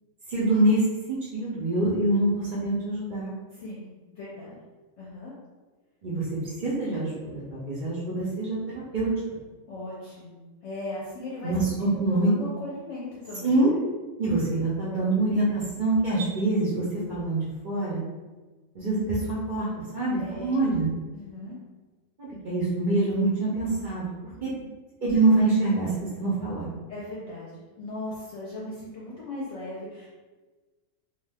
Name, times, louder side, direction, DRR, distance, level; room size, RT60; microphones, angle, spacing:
voice 1, 0.3-0.8 1.1-3.3 6.0-8.6 8.9-9.1 11.4-12.3 13.4-13.7 14.2-18.0 18.7-20.9 22.2-24.1 24.4-24.5 25.0-26.7, right 2 dB, 50° right, -7 dB, 0.6 m, -25 dB
voice 2, 3.5-3.9 4.1-4.6 5.0-5.3 9.7-11.5 12.1-13.6 20.2-20.6 21.1-21.6 24.3-24.7 26.9-30.1, left 1 dB, 60° left, -6 dB, 0.8 m, -38 dB
2.5 x 2.3 x 3.3 m, 1.3 s
omnidirectional pair, 1.5 m